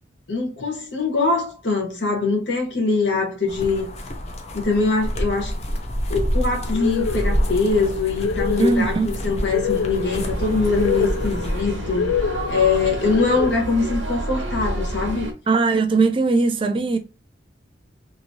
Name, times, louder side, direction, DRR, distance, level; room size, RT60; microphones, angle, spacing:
voice 1, 0.3-3.9 4.5-5.5 6.1-12.1 12.5-15.3, left 4 dB, 70° left, 1.2 m, -22 dB
sound 1, 3.5-11.6, equal, 35° left, 0.5 m, -28 dB
sound 2, 6.6-13.5, left 5 dB, 90° left, 0.4 m, -27 dB
voice 2, 8.6-9.1 15.5-17.0, right 3 dB, 30° right, 0.3 m, -19 dB
sound 3, 10.0-15.3, right 1 dB, 85° right, 1.1 m, -29 dB
2.8 x 2.6 x 2.6 m
head